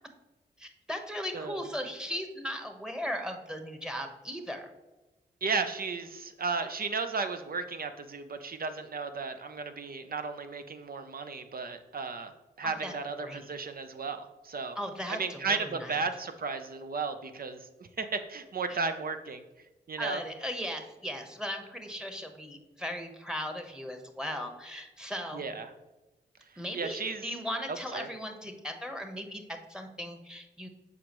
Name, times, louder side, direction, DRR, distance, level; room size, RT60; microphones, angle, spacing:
voice 1, 0.6-4.7 12.6-12.9 13.2-13.4 14.8-16.0 18.7-18.8 20.0-25.5 26.6-30.7, equal, 5° right, 4 dB, 1.1 m, -37 dB
voice 2, 5.4-14.8 15.1-19.4 19.9-20.2 25.3-25.7 26.7-27.2 27.7-28.1, right 4 dB, 55° right, 8 dB, 0.7 m, -34 dB
7.1 x 4.8 x 3.1 m, 1.1 s
cardioid pair, 45°, 18 cm